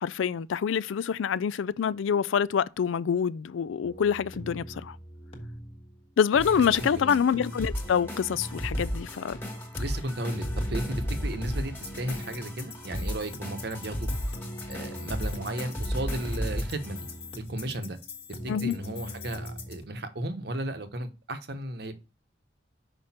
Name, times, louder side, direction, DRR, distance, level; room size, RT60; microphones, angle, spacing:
voice 1, 0.0-5.0 6.2-9.4 18.5-18.7, left 7 dB, 85° left, 0.4 m, -26 dB
sound 1, 3.8-19.8, left 1 dB, 30° left, 1.3 m, -42 dB
sound 2, 6.4-17.3, equal, 10° left, 1.6 m, -34 dB
voice 2, 6.8-7.2 9.8-14.1 14.7-17.0 17.4-18.0 18.4-21.9, right 1 dB, 55° right, 0.9 m, -34 dB
6.0 x 5.1 x 4.2 m
head